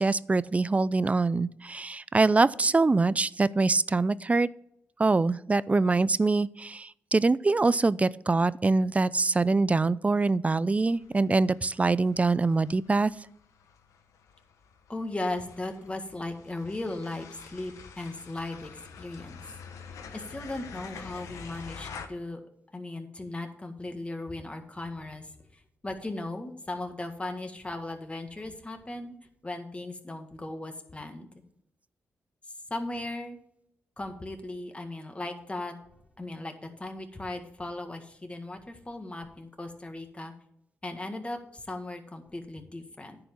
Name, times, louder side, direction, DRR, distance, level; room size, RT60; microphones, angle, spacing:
voice 1, 0.0-4.5 5.0-13.1, right 3 dB, 25° right, 19 dB, 0.4 m, -24 dB
sound 1, 10.9-22.1, left 6 dB, 85° left, 1.0 m, -47 dB
voice 2, 14.9-19.4 20.1-22.4 22.7-29.1 29.4-31.3 32.7-33.4 34.0-35.7 36.2-40.3 40.8-43.2, left 2 dB, 20° left, 5 dB, 1.8 m, -37 dB
10.0 x 4.9 x 7.4 m, 0.75 s
cardioid pair, 55°, 5 cm